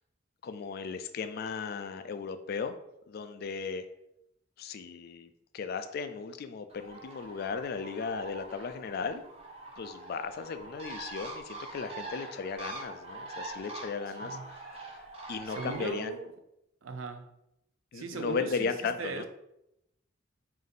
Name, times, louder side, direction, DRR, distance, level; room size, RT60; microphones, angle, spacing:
voice 1, 0.4-2.7 3.1-3.9 4.6-9.2 9.8-14.4 14.7-14.9 15.3-16.2 17.9-19.2, left 5 dB, 50° left, 0.3 m, -36 dB
Bird, 6.7-15.9, right 2 dB, 30° right, 0.7 m, -44 dB
voice 2, 15.5-16.3 16.8-17.3 17.9-19.2, right 4 dB, 90° right, 0.5 m, -38 dB
3.5 x 2.6 x 3.8 m
head